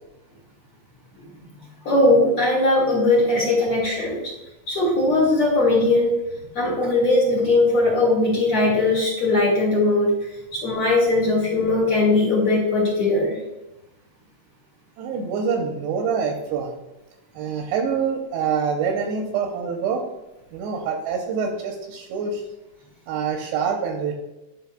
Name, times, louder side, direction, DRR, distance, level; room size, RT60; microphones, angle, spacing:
voice 1, 1.8-4.3 4.7-6.2 6.5-10.2 10.5-13.4, left 2 dB, 50° left, -3 dB, 1.7 m, -19 dB
voice 2, 15.0-16.8 17.3-20.0 20.5-22.4 23.1-24.1, right 6 dB, 80° right, 2 dB, 2.7 m, -25 dB
11.5 x 5.4 x 2.3 m, 0.96 s
omnidirectional pair, 5.3 m